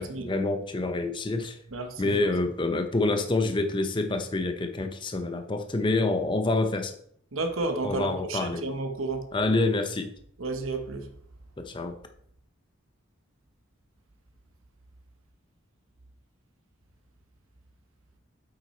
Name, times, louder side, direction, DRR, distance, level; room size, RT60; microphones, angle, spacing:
voice 1, 0.0-1.6 2.0-6.9 7.8-8.6 9.3-10.1 11.6-12.0, left 2 dB, 25° left, 0.5 m, -27 dB
voice 2, 1.7-2.2 7.3-9.3 10.4-11.1, right 2 dB, 80° right, 1.1 m, -32 dB
7.9 x 5.7 x 4.3 m
head